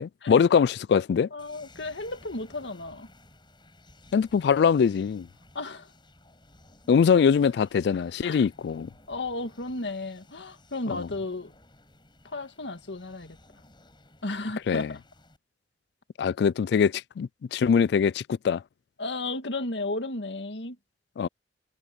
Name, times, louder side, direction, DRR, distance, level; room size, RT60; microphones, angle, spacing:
voice 1, 0.0-1.3 4.1-5.3 6.9-8.9 10.9-11.1 14.7-14.9 16.2-18.6 21.2-21.3, left 6 dB, 65° left, 0.3 m, -23 dB
voice 2, 1.3-3.1 5.5-5.9 8.2-8.4 9.1-11.5 12.2-13.4 14.2-15.0 19.0-20.8, left 2 dB, 85° left, 1.9 m, -34 dB
sound 1, 1.4-15.4, left 2 dB, 25° left, 7.4 m, -56 dB
head